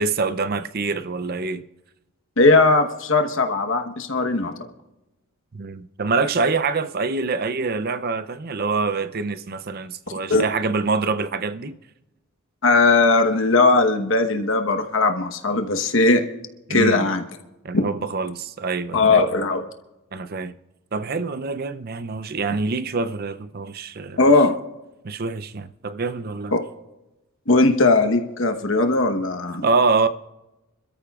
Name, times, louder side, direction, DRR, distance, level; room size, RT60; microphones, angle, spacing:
voice 1, 0.0-1.6 5.5-11.8 16.7-17.1 17.6-19.2 20.1-20.5 20.9-24.2 25.0-26.5 29.6-30.1, right 4 dB, 45° right, 0.5 m, -25 dB
voice 2, 2.4-4.5 10.3-10.4 12.6-16.2 16.7-17.2 17.7-17.8 18.9-19.6 24.2-24.5 26.5-26.6 27.5-29.7, left 3 dB, 55° left, 1.1 m, -18 dB
26.5 x 13.0 x 2.4 m
head